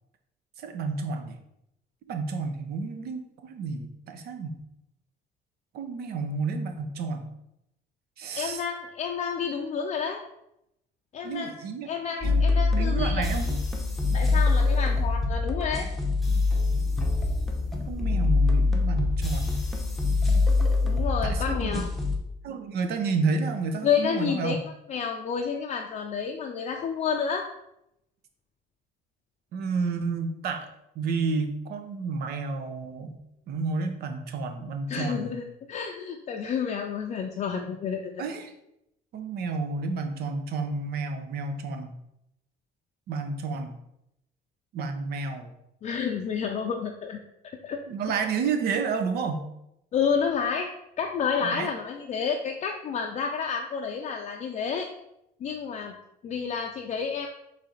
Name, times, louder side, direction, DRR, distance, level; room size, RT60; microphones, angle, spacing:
voice 1, 0.6-1.4 2.1-4.6 5.7-7.3 8.2-8.6 11.2-11.9 12.2-12.4 12.7-13.6 14.1-14.2 17.9-19.6 21.2-21.7 22.4-24.6 29.5-30.7 31.0-33.2 33.5-35.3 38.2-38.5 39.1-42.0 43.1-43.8 44.7-45.5 47.9-49.5 51.4-51.7, right 4 dB, 70° right, 7 dB, 0.7 m, -31 dB
voice 2, 8.4-10.2 11.1-11.6 11.9-13.3 14.1-15.9 20.8-21.9 23.8-24.6 24.9-27.5 34.9-38.2 45.8-47.2 47.6-47.8 49.9-50.7 51.0-54.9 55.4-55.9 56.2-57.3, left 6 dB, 40° left, 3 dB, 0.4 m, -30 dB
sound 1, 12.2-22.2, left 3 dB, ahead, 0.8 m, -24 dB
4.2 x 3.2 x 3.9 m, 0.82 s
cardioid pair, 110°, 17 cm